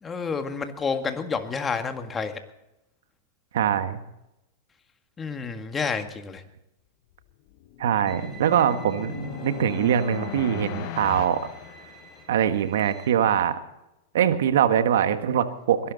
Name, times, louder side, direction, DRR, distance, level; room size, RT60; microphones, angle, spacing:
voice 1, 0.0-2.4 5.2-6.4, left 5 dB, 20° left, 7 dB, 1.9 m, -29 dB
voice 2, 3.5-4.0 7.8-11.4 12.3-13.5 14.1-15.9, right 9 dB, 75° right, 9 dB, 1.5 m, -23 dB
sound 1, 7.3-12.5, left 14 dB, 50° left, 0.9 m, -38 dB
Bowed string instrument, 8.1-13.1, right 3 dB, 20° right, 3.7 m, -49 dB
22.0 x 12.0 x 4.1 m, 0.89 s
hypercardioid pair, 125°, 0 cm